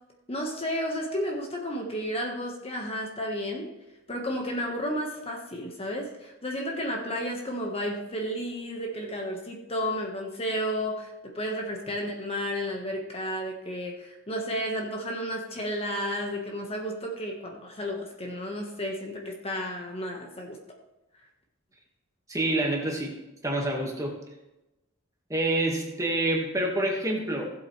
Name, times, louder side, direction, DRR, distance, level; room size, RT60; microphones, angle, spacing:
voice 1, 0.3-3.7 4.1-20.6, equal, 30° left, 1 dB, 1.4 m, -32 dB
voice 2, 22.3-24.2 25.3-27.5, right 1 dB, 15° right, 0 dB, 1.7 m, -27 dB
16.0 x 7.8 x 3.2 m, 0.98 s
head